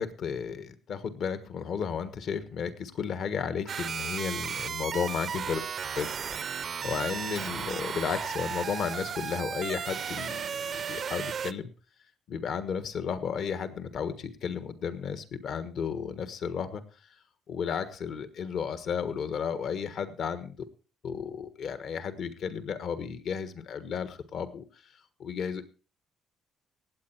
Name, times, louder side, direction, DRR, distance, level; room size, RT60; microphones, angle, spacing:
voice 1, 0.0-5.6 6.0-11.7 12.3-16.8 17.5-20.6 21.0-24.9 25.2-25.7, left 7 dB, 65° left, 12 dB, 1.4 m, -33 dB
sound 1, 3.7-11.5, right 7 dB, 50° right, 0.5 m, -34 dB
18.0 x 8.1 x 4.5 m, 0.35 s
cardioid pair, 105°, 0 cm